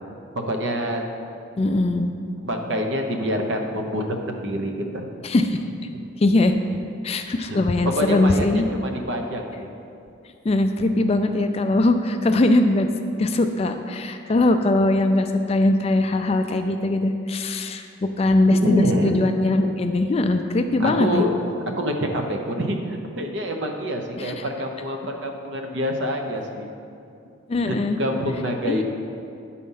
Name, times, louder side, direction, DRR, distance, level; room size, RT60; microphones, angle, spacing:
voice 1, 0.5-1.0 1.7-1.8 2.4-5.1 5.9-6.0 7.5-7.6 7.8-9.7 18.5-19.2 20.8-21.3 21.8-26.7 27.6-28.8, equal, 60° right, 3 dB, 0.8 m, -26 dB
voice 2, 1.6-2.1 5.2-5.6 6.2-6.6 7.0-8.6 10.4-12.9 13.2-21.2 24.2-24.4 27.5-28.0 28.7-28.8, left 2 dB, 30° left, 7 dB, 0.3 m, -21 dB
9.2 x 4.2 x 5.5 m, 2.5 s
head